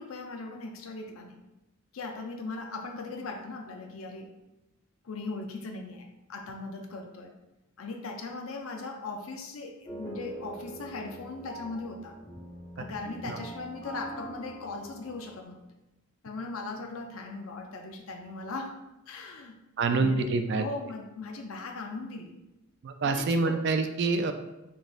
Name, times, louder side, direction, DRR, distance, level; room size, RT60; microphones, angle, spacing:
voice 1, 0.0-1.4 1.9-4.3 5.0-7.3 7.8-12.2 12.8-15.6 16.2-19.6 19.9-22.4 23.0-23.6, left 3 dB, 70° left, 4 dB, 0.5 m, -39 dB
sound 1, 9.9-15.4, right 1 dB, 20° left, 0.8 m, -44 dB
voice 2, 19.8-20.6 22.8-24.3, right 3 dB, 50° right, 7 dB, 0.3 m, -26 dB
3.9 x 3.7 x 2.5 m, 1.0 s
head